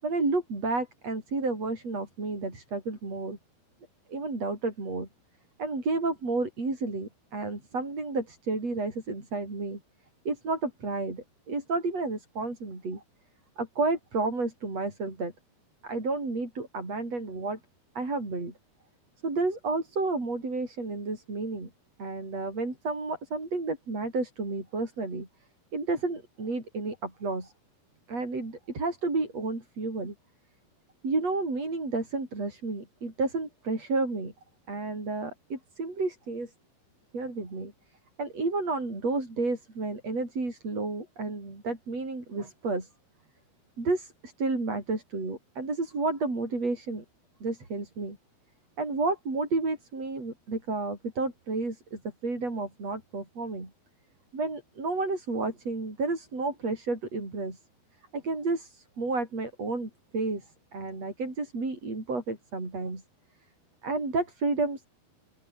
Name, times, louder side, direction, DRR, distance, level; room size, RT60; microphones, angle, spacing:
voice 1, 0.0-3.4 4.1-5.1 5.6-9.8 10.3-13.0 13.6-15.3 15.8-17.6 18.0-18.5 19.2-21.7 22.0-25.3 25.7-27.5 28.1-30.2 31.0-34.3 34.7-36.5 37.1-37.7 38.2-42.9 43.8-47.0 47.4-48.2 48.8-53.7 54.3-57.6 58.1-63.0 63.8-64.8, right 3 dB, 40° right, 8.5 m, -31 dB
open air
omnidirectional pair, 4.7 m